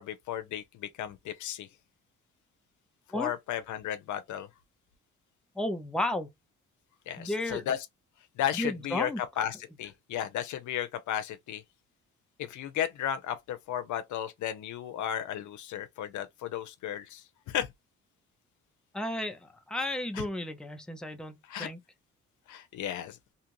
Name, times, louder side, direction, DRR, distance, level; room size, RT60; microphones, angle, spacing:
voice 1, 0.0-1.7 3.1-4.5 7.1-7.8 8.4-11.6 12.4-17.7 20.1-20.3 21.5-21.7 22.5-23.2, left 10 dB, 75° left, 0.7 m, -34 dB
voice 2, 5.5-6.3 7.2-7.6 8.5-9.2 18.9-21.8, left 1 dB, ahead, 0.7 m, -33 dB
2.8 x 2.4 x 3.0 m
cardioid pair, 90°, 30 cm